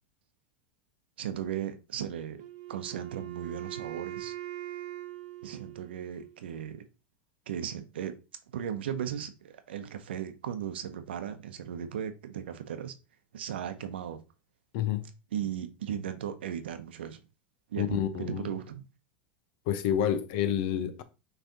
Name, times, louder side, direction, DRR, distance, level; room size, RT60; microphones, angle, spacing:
voice 1, 1.2-2.4 2.7-4.3 5.4-6.8 7.5-8.1 8.5-12.9 13.3-14.2 15.3-17.2 17.7-18.9, right 9 dB, 80° right, 0.7 m, -36 dB
Wind instrument woodwind instrument, 2.4-6.4, right 14 dB, 60° right, 1.0 m, -42 dB
voice 2, 14.7-15.1 17.8-18.5 19.7-21.0, left 10 dB, 60° left, 0.8 m, -29 dB
6.0 x 3.3 x 2.7 m
hypercardioid pair, 95°, 6 cm